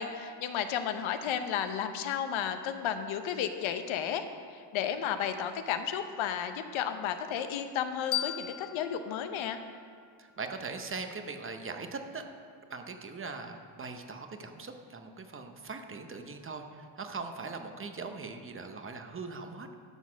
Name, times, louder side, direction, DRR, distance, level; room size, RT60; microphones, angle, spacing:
voice 1, 0.0-9.6, left 8 dB, 70° left, 8 dB, 0.8 m, -33 dB
sound 1, 8.1-10.9, left 11 dB, 40° left, 0.5 m, -39 dB
voice 2, 10.2-12.2 12.7-19.7, right 4 dB, 25° right, 6 dB, 0.7 m, -41 dB
12.0 x 4.1 x 6.2 m, 2.1 s
cardioid pair, 100°, 50 cm